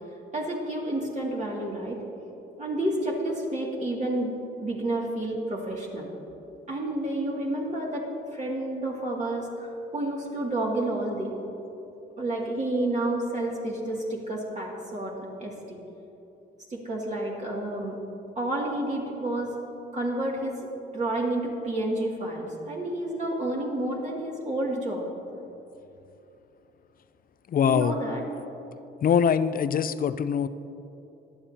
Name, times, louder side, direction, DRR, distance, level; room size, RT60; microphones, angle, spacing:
voice 1, 0.3-2.0 2.6-4.3 4.6-6.1 6.7-11.3 12.2-15.8 16.7-18.0 18.4-19.6 19.9-20.6 20.9-25.1 27.7-28.2, right 1 dB, 35° right, -3 dB, 2.4 m, -30 dB
voice 2, 27.5-27.9 29.0-30.5, left 7 dB, 45° left, 14 dB, 0.5 m, -23 dB
17.5 x 11.0 x 2.9 m, 2.9 s
cardioid pair, 90°, 20 cm